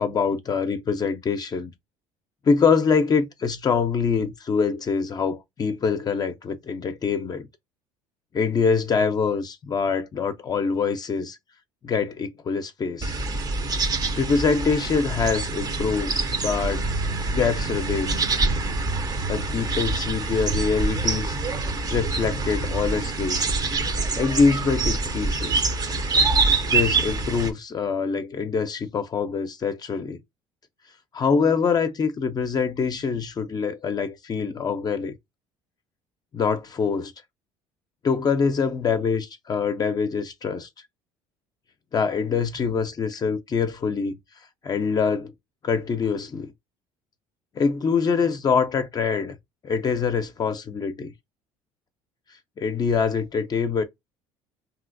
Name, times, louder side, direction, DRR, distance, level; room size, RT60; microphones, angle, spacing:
voice 1, 0.0-1.7 2.4-7.5 8.3-11.4 11.8-13.1 14.1-16.9 17.3-18.3 19.3-21.4 21.9-23.4 24.2-25.7 26.7-30.2 31.1-35.1 36.3-37.1 38.0-40.7 41.9-44.2 44.6-45.3 45.6-46.5 47.6-49.4 49.6-51.1 52.6-53.8, left 5 dB, 35° left, 0.5 m, -24 dB
sound 1, 13.0-27.5, right 3 dB, 30° right, 0.6 m, -25 dB
3.0 x 2.8 x 2.5 m
supercardioid pair, 90°, 12 cm